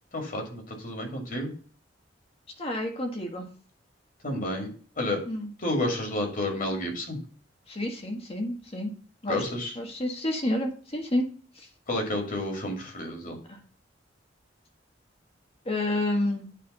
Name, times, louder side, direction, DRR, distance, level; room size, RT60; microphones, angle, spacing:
voice 1, 0.1-1.5 4.2-4.7 5.0-5.2 5.6-7.2 9.3-9.7 11.9-13.4, left 1 dB, 50° left, 3 dB, 2.1 m, -30 dB
voice 2, 2.6-3.5 5.3-5.5 7.7-8.9 9.2-9.4 9.8-11.3 11.6-11.7 13.5-13.6 15.6-16.4, left 1 dB, 35° left, 2 dB, 1.3 m, -29 dB
9.4 x 3.4 x 5.3 m, 0.42 s
head